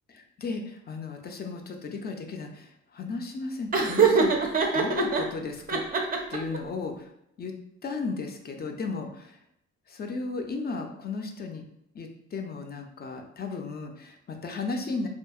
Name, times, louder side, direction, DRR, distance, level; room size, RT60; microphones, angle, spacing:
voice 1, 0.1-4.4 4.7-5.8 6.3-7.1 7.4-7.5 7.8-9.4 9.9-11.6 11.9-15.1, left 4 dB, 35° left, 4 dB, 0.4 m, -34 dB
Laughter, 3.7-5.2 5.7-6.6, right 5 dB, 30° right, 0.4 m, -23 dB
2.7 x 2.4 x 2.3 m, 0.76 s
cardioid pair, 90°, 30 cm